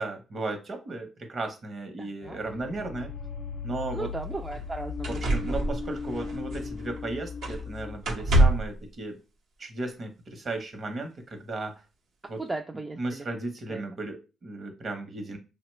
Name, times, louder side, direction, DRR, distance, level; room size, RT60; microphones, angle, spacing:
voice 1, 0.0-3.1 3.6-4.1 5.1-9.2 9.6-11.8 12.3-12.4 13.0-15.4, right 2 dB, 45° right, 5 dB, 0.8 m, -35 dB
voice 2, 2.0-2.4 3.9-5.6 12.4-13.2 13.7-13.8, right 2 dB, 20° right, 2 dB, 0.3 m, -37 dB
sound 1, 2.2-8.0, left 5 dB, 65° left, 0.4 m, -37 dB
sound 2, 3.8-3.9 4.5-4.6 5.0-7.0 7.4-7.7 8.0-8.8 9.9-10.0, right 1 dB, 85° right, 0.8 m, -26 dB
2.9 x 2.1 x 3.1 m, 0.30 s
cardioid pair, 90°, 0 cm